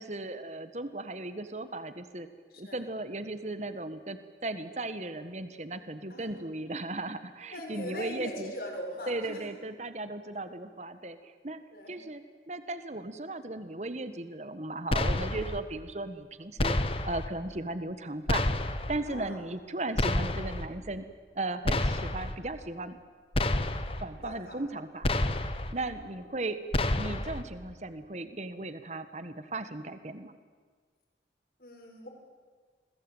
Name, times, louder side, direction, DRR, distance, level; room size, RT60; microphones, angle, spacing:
voice 1, 0.0-2.3 2.6-8.5 9.1-11.6 11.9-12.2 12.5-16.8 17.0-18.4 18.9-21.1 21.3-23.0 24.0-25.1 25.7-30.3, right 2 dB, 40° right, 11 dB, 1.4 m, -36 dB
voice 2, 7.5-9.4 11.7-12.0 19.0-19.4 24.2-24.6 25.7-25.9 31.6-32.1, left 1 dB, 55° left, 1 dB, 6.6 m, -41 dB
sound 1, 14.9-15.6 16.6-17.3 18.3-19.0 20.0-20.7 21.6-22.3 23.3-24.0 25.0-25.7 26.7-27.4, left 1 dB, 30° left, 1.3 m, -29 dB
28.0 x 21.5 x 9.1 m, 1.5 s
head